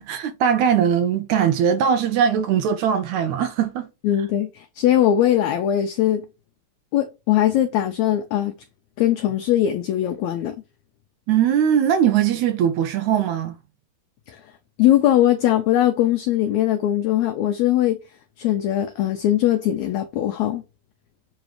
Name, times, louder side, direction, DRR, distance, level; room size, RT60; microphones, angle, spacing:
voice 1, 0.0-3.9 11.3-13.6, right 8 dB, 80° right, 1.7 m, -20 dB
voice 2, 4.0-6.3 6.9-8.5 9.0-10.6 14.3-14.4 14.8-18.0 18.4-20.6, left 12 dB, 80° left, 1.7 m, -20 dB
7.8 x 3.1 x 4.8 m
omnidirectional pair, 3.8 m